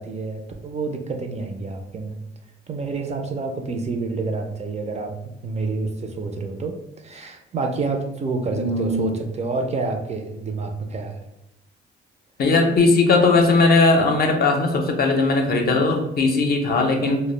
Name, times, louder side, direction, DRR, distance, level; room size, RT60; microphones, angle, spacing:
voice 1, 0.0-2.1 2.7-6.7 7.0-11.2, right 3 dB, 35° right, 4 dB, 0.4 m, -28 dB
voice 2, 8.5-9.1 12.4-17.2, left 3 dB, 50° left, 3 dB, 0.5 m, -18 dB
2.1 x 2.0 x 3.1 m, 0.88 s
cardioid pair, 90°, 20 cm